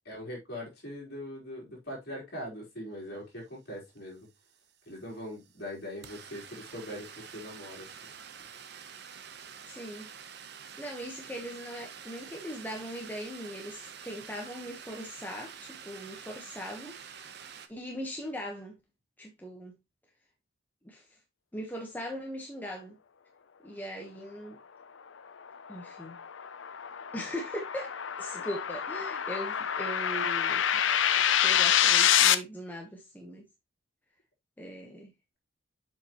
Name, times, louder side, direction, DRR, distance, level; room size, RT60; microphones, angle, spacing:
voice 1, 0.1-4.3 4.9-7.9, equal, 50° left, 3.9 m, -41 dB
sound 1, 4.0-4.1 4.2-17.7, right 7 dB, 55° right, 0.8 m, -48 dB
voice 2, 9.7-10.1 10.8-17.4 17.7-18.8 19.2-19.7 20.8-21.2 21.5-23.0 23.6-24.6 25.7-26.2 27.1-30.8 31.4-33.4 34.6-35.1, equal, 10° left, 1.1 m, -40 dB
sound 2, 25.5-32.3, left 10 dB, 70° left, 0.6 m, -26 dB
7.5 x 5.2 x 3.0 m
head